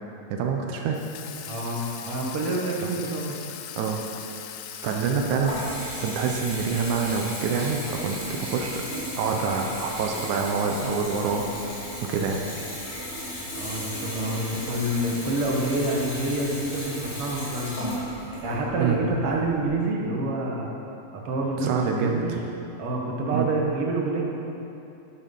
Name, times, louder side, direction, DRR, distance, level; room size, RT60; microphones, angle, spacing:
voice 1, 0.3-1.0 2.8-2.9 3.8-4.0 4.8-5.5 6.0-8.8 9.2-11.5 12.0-12.4 18.8-19.0 21.6-22.2 23.3-23.5, right 5 dB, 85° right, 2 dB, 2.2 m, -26 dB
Water tap faucet / Sink (filling or washing), 0.9-6.2, left 9 dB, 85° left, 2.1 m, -40 dB
voice 2, 1.5-3.4 13.6-18.0 18.4-20.7 21.3-22.3 22.8-24.2, right 2 dB, 55° right, -1 dB, 2.0 m, -27 dB
Water tap faucet / Bathtub (filling or washing) / Trickle dribble, 4.8-19.7, equal, 45° left, 3.5 m, -35 dB
11.0 x 7.7 x 5.3 m, 2.9 s
omnidirectional pair, 3.4 m